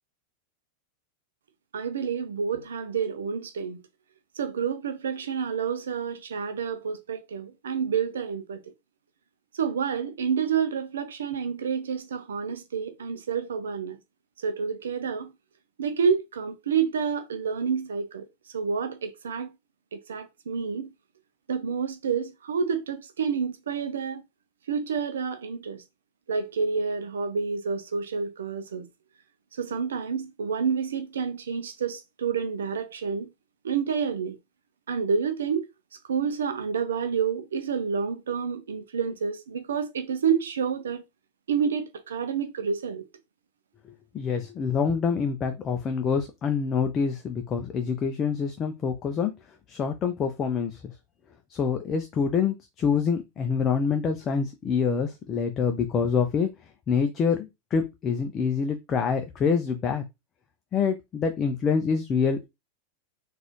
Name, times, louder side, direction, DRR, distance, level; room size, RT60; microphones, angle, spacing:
voice 1, 1.7-3.8 4.4-8.6 9.5-14.0 14.4-15.3 15.8-18.3 18.5-19.5 19.9-20.9 21.5-24.2 24.7-25.8 26.3-28.9 29.5-33.3 33.6-34.4 34.9-35.7 36.1-41.0 41.5-43.0, right 6 dB, 65° right, 0.5 m, -29 dB
voice 2, 44.1-49.3 49.7-50.9 51.5-56.5 56.9-60.0 60.7-62.5, left 6 dB, 25° left, 0.5 m, -26 dB
3.9 x 2.5 x 3.0 m
figure-of-eight pair, 90°, 0 cm